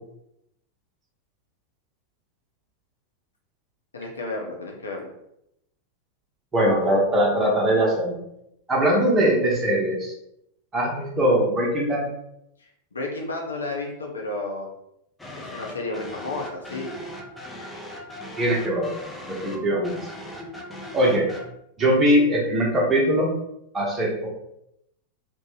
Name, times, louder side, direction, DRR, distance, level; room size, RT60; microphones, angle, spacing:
voice 1, 3.9-5.1 12.6-14.7 15.4-17.0, left 2 dB, 75° left, 0 dB, 0.6 m, -32 dB
voice 2, 6.5-8.2 8.7-10.1 10.7-12.1 18.4-19.0 19.3-20.0 20.9-21.3 21.8-23.3 23.7-24.3, equal, 20° right, -2 dB, 0.9 m, -21 dB
sound 1, 15.2-21.5, left 1 dB, 10° left, 0.6 m, -39 dB
3.0 x 2.1 x 3.1 m, 0.80 s
figure-of-eight pair, 90°, 0 cm